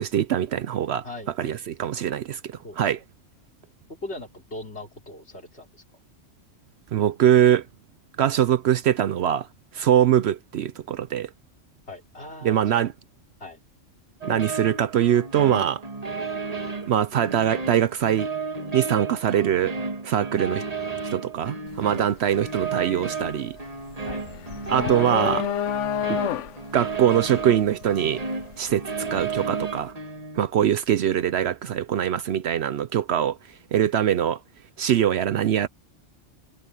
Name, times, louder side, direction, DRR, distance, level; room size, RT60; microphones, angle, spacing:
voice 1, 0.0-1.1 1.4-3.0 6.9-7.6 8.2-9.5 9.7-11.3 12.4-12.9 14.3-15.8 16.8-18.3 18.7-19.7 20.0-20.6 21.1-23.6 24.7-25.5 26.1-26.2 26.7-28.2 28.6-29.9 30.4-33.4 33.7-34.4 34.8-35.7, right 10 dB, 65° right, 0.8 m, -22 dB
voice 2, 1.0-1.6 2.6-3.0 4.0-5.8 11.9-12.8 13.4-13.6 24.0-24.2, left 2 dB, 55° left, 4.3 m, -39 dB
sound 1, 14.2-30.4, right 4 dB, 30° right, 1.6 m, -33 dB
sound 2, 21.7-21.9 22.3-29.3, left 10 dB, 75° left, 0.9 m, -30 dB
omnidirectional pair, 1.3 m